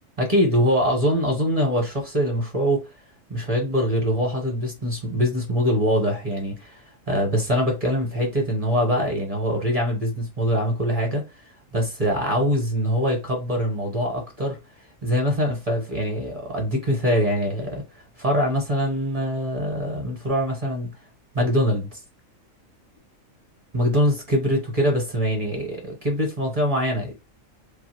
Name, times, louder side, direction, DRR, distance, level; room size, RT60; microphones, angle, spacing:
voice 1, 0.2-2.9 3.3-11.2 11.7-14.6 15.0-20.9 21.3-22.0 23.7-27.1, equal, 30° right, 0.9 m, -23 dB
2.7 x 2.3 x 3.1 m
omnidirectional pair, 1.4 m